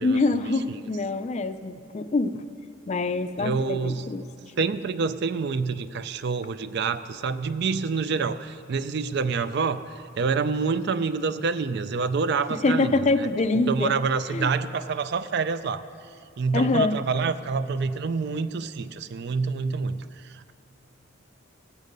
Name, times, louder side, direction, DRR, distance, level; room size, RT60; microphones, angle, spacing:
voice 1, 0.0-2.4 2.9-4.3 12.6-13.9 14.3-14.5 16.5-17.0, left 3 dB, 35° left, 11 dB, 0.4 m, -25 dB
voice 2, 3.4-4.1 4.6-9.8 10.2-13.0 13.7-15.8 16.4-20.5, right 4 dB, 55° right, 13 dB, 0.4 m, -27 dB
17.0 x 8.2 x 5.3 m, 2.5 s
head